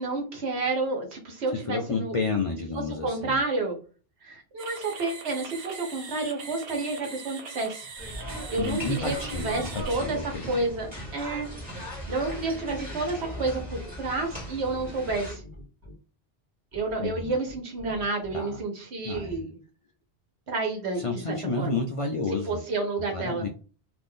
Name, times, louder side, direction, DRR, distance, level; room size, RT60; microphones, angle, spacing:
voice 1, 0.0-2.2 3.0-3.8 4.2-7.9 8.5-10.2 10.5-11.5 12.1-15.4 16.7-19.5 20.5-21.7 22.5-23.5, right 3 dB, 85° right, 3 dB, 1.3 m, -30 dB
voice 2, 1.5-3.4 8.6-10.5 17.0-17.3 18.3-18.6 19.0-19.5 21.0-22.6 23.1-23.5, left 3 dB, 60° left, 2 dB, 0.3 m, -31 dB
sound 1, 4.6-10.0, right 5 dB, 65° right, 1.0 m, -41 dB
sound 2, 8.0-15.4, equal, 10° right, 1.4 m, -38 dB
sound 3, 10.3-11.1 11.9-15.9 16.7-18.3 19.1-19.4, left 2 dB, 40° right, 1.0 m, -47 dB
2.6 x 2.5 x 3.5 m, 0.36 s
omnidirectional pair, 1.1 m